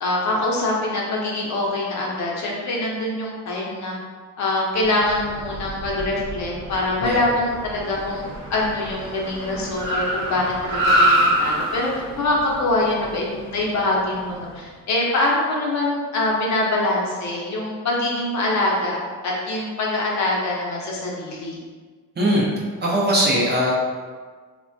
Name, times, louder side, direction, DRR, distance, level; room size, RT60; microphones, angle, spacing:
voice 1, 0.0-3.9 4.4-19.0 19.2-21.6, left 2 dB, 55° left, -3 dB, 0.7 m, -24 dB
Car, 4.9-14.5, right 1 dB, 70° right, 0.8 m, -26 dB
voice 2, 22.2-22.5 22.8-23.7, equal, 30° right, -5 dB, 0.5 m, -20 dB
3.1 x 2.2 x 2.5 m, 1.5 s
cardioid pair, 155°, 34 cm